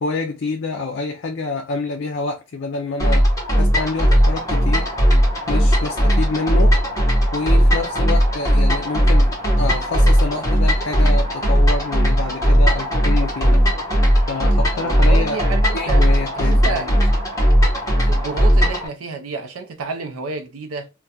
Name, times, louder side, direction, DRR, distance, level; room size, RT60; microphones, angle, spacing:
voice 1, 0.0-3.3 3.6-4.9 5.5-6.8 7.3-13.6 14.3-15.4 15.7-17.0, left 3 dB, 55° left, 0.4 m, -27 dB
sound 1, 3.0-18.9, equal, 15° left, 0.9 m, -17 dB
voice 2, 14.8-16.0 16.4-16.9 18.0-20.9, right 4 dB, 85° right, 0.5 m, -29 dB
2.4 x 2.2 x 4.0 m
head